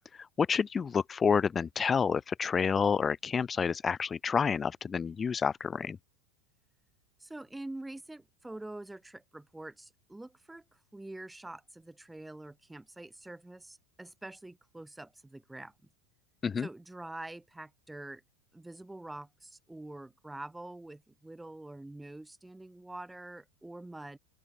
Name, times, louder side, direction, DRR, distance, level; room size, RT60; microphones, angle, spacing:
voice 1, 0.4-6.0 16.4-16.7, left 6 dB, 20° left, 0.7 m, -29 dB
voice 2, 7.2-15.7 16.6-18.2 18.5-24.2, right 2 dB, 5° right, 6.7 m, -45 dB
open air
hypercardioid pair, 110°, 0 cm